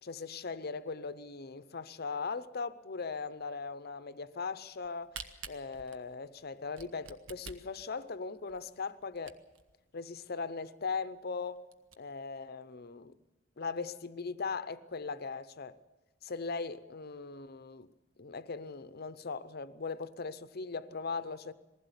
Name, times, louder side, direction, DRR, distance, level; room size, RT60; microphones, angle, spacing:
voice 1, 0.0-9.4 9.9-11.6 12.0-13.1 13.6-15.8 16.2-17.9 18.2-21.5, left 4 dB, 50° left, 0.7 m, -39 dB
Camera, 4.7-9.7 10.2-10.3 10.5-10.6 11.1-11.2 11.6-11.9, right 5 dB, 85° right, 1.2 m, -48 dB
20.5 x 15.5 x 8.2 m
head